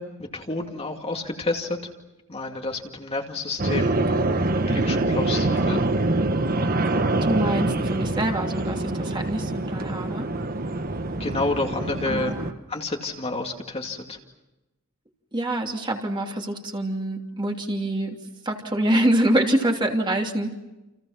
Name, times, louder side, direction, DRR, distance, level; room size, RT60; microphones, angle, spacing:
voice 1, 0.0-1.8 2.3-3.9 4.7-5.8 11.2-12.3 12.7-14.2, left 2 dB, 30° left, 2 dB, 2.4 m, -29 dB
sound 1, 3.6-12.5, right 2 dB, 45° right, 1.3 m, -25 dB
voice 2, 7.2-10.3 12.1-12.5 15.3-18.2 18.4-20.5, right 1 dB, 25° right, 2 dB, 2.9 m, -25 dB
30.0 x 28.5 x 5.9 m, 1.0 s
head